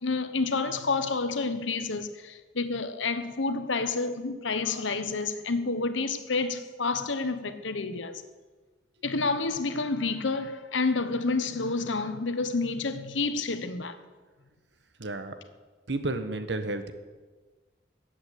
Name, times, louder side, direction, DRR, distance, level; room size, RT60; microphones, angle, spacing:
voice 1, 0.0-8.2 9.0-14.0, left 3 dB, 85° left, 1.1 m, -29 dB
voice 2, 15.0-15.3 15.9-16.9, right 2 dB, 70° right, 1.3 m, -31 dB
14.5 x 8.2 x 9.6 m
head